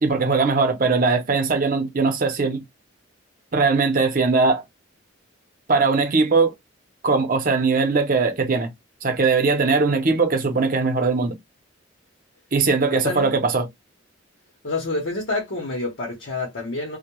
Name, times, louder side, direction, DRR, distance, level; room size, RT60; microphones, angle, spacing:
voice 1, 0.0-2.6 3.5-4.6 5.7-6.5 7.0-8.7 9.0-11.4 12.5-13.7, right 4 dB, 45° right, 0.6 m, -20 dB
voice 2, 12.9-13.3 14.6-17.0, left 2 dB, 70° left, 0.8 m, -28 dB
2.2 x 2.1 x 2.9 m
head